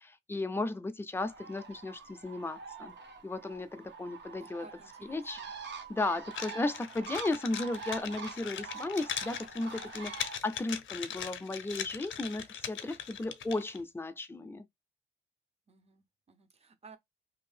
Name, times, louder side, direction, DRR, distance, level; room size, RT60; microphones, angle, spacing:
voice 1, 0.0-2.9 3.2-4.7 5.0-5.4 5.7-14.6, left 2 dB, 10° left, 0.4 m, -35 dB
Bird, 1.2-10.4, right 5 dB, 65° right, 0.9 m, -45 dB
voice 2, 4.4-5.5 6.1-6.2 15.7-17.0, right 4 dB, 30° right, 0.6 m, -57 dB
sound 1, 6.3-13.8, left 9 dB, 80° left, 0.5 m, -40 dB
2.6 x 2.6 x 3.2 m
wide cardioid pair, 130°, 20 cm